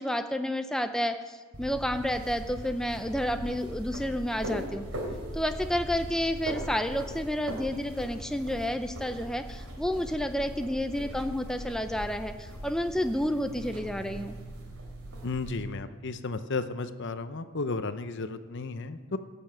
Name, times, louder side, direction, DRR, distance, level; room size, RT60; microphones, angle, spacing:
voice 1, 0.0-4.8 5.3-14.3, equal, 5° left, 7 dB, 0.5 m, -30 dB
sound 1, 1.5-15.6, equal, 80° right, 3.2 m, -40 dB
voice 2, 15.2-19.2, left 3 dB, 55° left, 11 dB, 0.7 m, -33 dB
17.0 x 7.0 x 7.6 m, 1.4 s
head